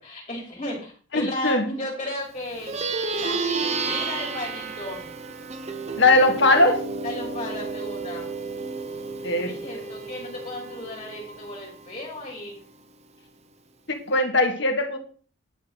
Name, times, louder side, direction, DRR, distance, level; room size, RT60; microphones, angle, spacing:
voice 1, 0.0-2.7 3.1-5.1 6.7-6.8 7.0-8.3 9.3-12.6, left 1 dB, 30° left, -2 dB, 4.4 m, -35 dB
voice 2, 1.1-1.6 6.0-6.8 9.2-9.8 14.1-15.0, left 2 dB, 55° left, 4 dB, 2.1 m, -20 dB
Plucked string instrument, 2.5-12.3, right 4 dB, 30° right, 0.9 m, -32 dB
10.5 x 6.0 x 6.2 m, 0.42 s
head